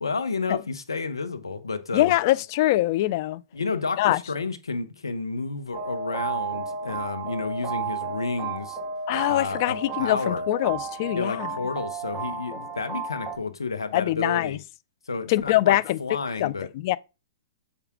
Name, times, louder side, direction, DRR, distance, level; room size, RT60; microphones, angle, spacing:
voice 1, 0.0-2.1 3.5-8.8 9.3-10.5 11.1-14.6 15.1-16.7, left 4 dB, 90° left, 1.0 m, -31 dB
voice 2, 1.9-3.4 4.0-4.2 9.1-11.5 13.9-14.6 15.3-16.0 16.4-17.0, left 16 dB, 50° left, 0.4 m, -23 dB
sound 1, 5.7-13.4, right 4 dB, 10° right, 2.0 m, -33 dB
7.0 x 4.9 x 3.7 m
hypercardioid pair, 120°, 2 cm